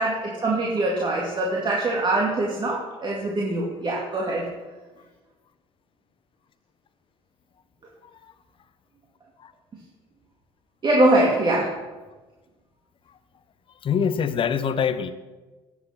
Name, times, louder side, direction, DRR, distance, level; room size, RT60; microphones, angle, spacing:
voice 1, 0.0-4.5 10.8-11.7, right 2 dB, 35° right, -3 dB, 2.1 m, -23 dB
voice 2, 13.8-15.1, left 7 dB, 45° left, 12 dB, 0.8 m, -24 dB
9.6 x 6.6 x 5.7 m, 1.2 s
hypercardioid pair, 60°, 13 cm